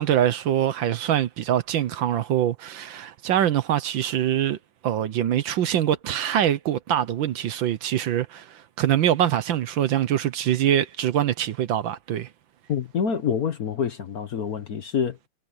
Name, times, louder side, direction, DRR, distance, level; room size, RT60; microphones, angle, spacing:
voice 1, 0.0-4.6 4.8-12.3, right 11 dB, 65° right, 1.5 m, -24 dB
voice 2, 12.7-15.3, left 7 dB, 50° left, 1.3 m, -27 dB
omnidirectional pair, 2.4 m